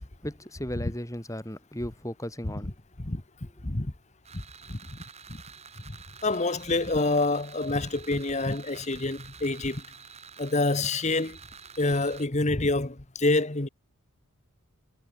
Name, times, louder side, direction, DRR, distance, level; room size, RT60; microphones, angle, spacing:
voice 1, 0.2-2.7, equal, 15° left, 5.0 m, -35 dB
voice 2, 3.6-3.9 4.3-4.4 4.7-4.8 5.3-5.4 5.9-6.0 6.2-9.8 10.4-11.4 11.8-13.7, left 2 dB, 30° left, 1.3 m, -27 dB
sound 1, 4.2-12.3, right 6 dB, 30° right, 4.9 m, -49 dB
head